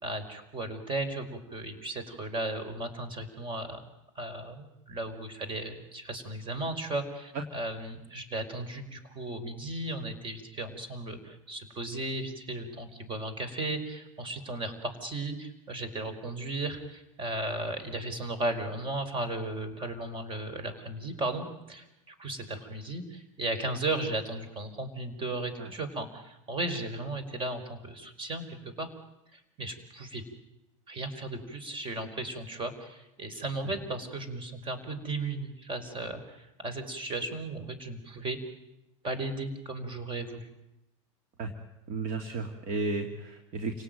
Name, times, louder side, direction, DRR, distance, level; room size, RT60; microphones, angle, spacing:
voice 1, 0.0-3.8 4.2-28.9 29.3-30.2 30.9-38.4 39.0-40.5, right 2 dB, 30° right, 10 dB, 5.2 m, -35 dB
voice 2, 41.9-43.8, right 3 dB, 50° right, 4 dB, 2.9 m, -33 dB
29.5 x 18.0 x 9.3 m, 0.92 s
supercardioid pair, 110°, 17 cm